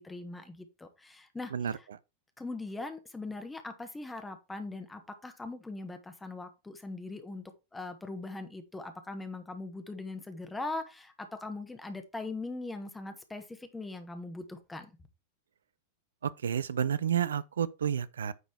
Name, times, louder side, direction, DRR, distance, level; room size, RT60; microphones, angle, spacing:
voice 1, 0.0-1.8 2.4-7.4 7.7-14.9, left 2 dB, 10° left, 1.4 m, -41 dB
voice 2, 16.2-18.3, right 8 dB, 65° right, 0.5 m, -30 dB
9.5 x 4.0 x 4.7 m
figure-of-eight pair, 90°, 0 cm